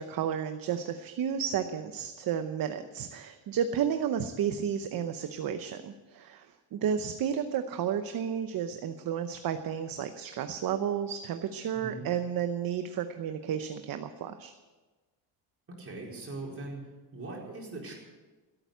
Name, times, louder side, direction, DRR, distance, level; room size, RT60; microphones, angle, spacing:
voice 1, 0.0-14.5, right 8 dB, 45° right, 8 dB, 0.8 m, -32 dB
voice 2, 11.7-12.1 15.8-16.8 17.1-17.9, right 2 dB, 30° right, -2 dB, 4.7 m, -40 dB
16.5 x 9.1 x 8.1 m, 1.3 s
cardioid pair, 140°, 48 cm